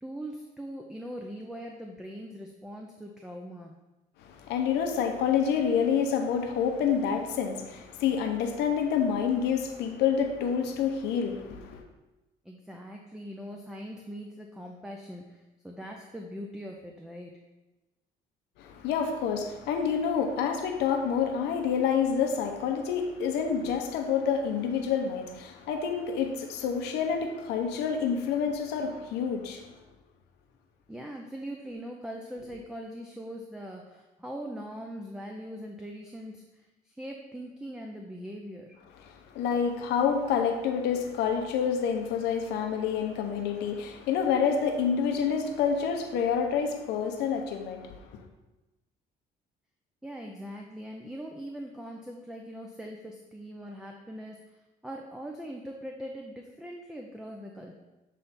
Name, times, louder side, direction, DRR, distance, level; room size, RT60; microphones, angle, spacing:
voice 1, 0.0-3.7 12.4-17.4 30.9-38.8 50.0-54.6 54.8-57.7, equal, 5° right, 1 dB, 0.5 m, -41 dB
voice 2, 4.2-11.8 18.6-29.7 39.0-48.2, left 7 dB, 85° left, 4 dB, 0.8 m, -28 dB
7.3 x 3.3 x 4.1 m, 1.1 s
cardioid pair, 110°, 17 cm